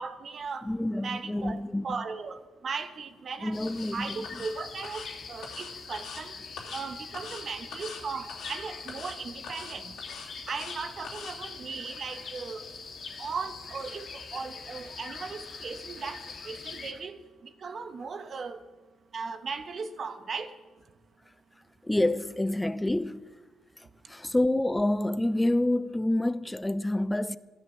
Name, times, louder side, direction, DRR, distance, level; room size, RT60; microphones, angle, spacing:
voice 1, 0.0-0.7 1.0-3.6 3.9-6.4 6.7-10.0 10.5-12.7 13.2-18.7 19.1-20.6, right 5 dB, 45° right, 1.3 m, -37 dB
voice 2, 0.6-1.9 3.4-4.2 21.8-23.3 24.1-27.4, left 1 dB, 10° left, 0.6 m, -27 dB
sound 1, 3.5-16.9, left 5 dB, 50° left, 2.1 m, -43 dB
sound 2, 3.7-3.9 4.2-4.5 4.8-5.1 5.4-6.2 6.6-6.8 7.1-7.4 7.7-8.0 8.3-8.6 8.9-9.2 9.4-10.8 11.0-11.3, left 5 dB, 80° left, 2.9 m, -43 dB
15.0 x 11.0 x 7.2 m
cardioid pair, 90°, 0 cm